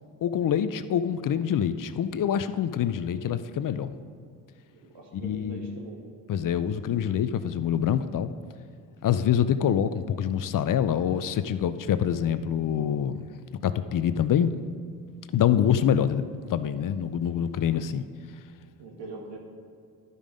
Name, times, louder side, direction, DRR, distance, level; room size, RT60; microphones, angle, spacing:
voice 1, 0.2-3.9 5.1-5.8 6.3-8.3 9.0-13.3 13.6-14.5 15.3-18.0, left 9 dB, 45° left, 13 dB, 0.6 m, -25 dB
voice 2, 4.8-6.0 18.8-19.4, right 3 dB, 75° right, -1 dB, 2.0 m, -42 dB
11.5 x 5.4 x 5.1 m, 2.3 s
supercardioid pair, 55°, 44 cm